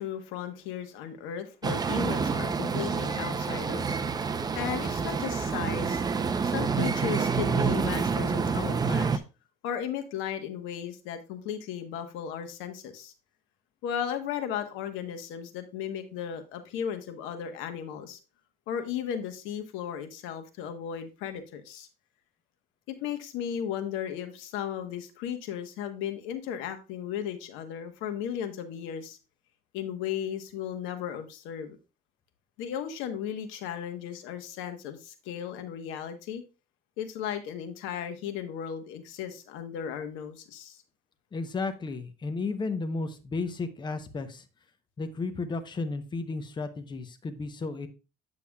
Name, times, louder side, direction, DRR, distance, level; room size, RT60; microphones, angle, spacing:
voice 1, 0.0-3.9 4.5-6.0 6.4-9.2 9.6-13.1 13.8-18.2 18.7-21.9 22.9-29.2 29.7-31.8 32.6-36.4 37.0-40.8, left 9 dB, 90° left, 1.1 m, -35 dB
sound 1, 1.6-9.2, right 5 dB, 20° right, 0.5 m, -28 dB
voice 2, 41.3-44.5 45.0-47.9, left 3 dB, 25° left, 0.8 m, -33 dB
8.4 x 6.9 x 2.3 m
cardioid pair, 125°, 20 cm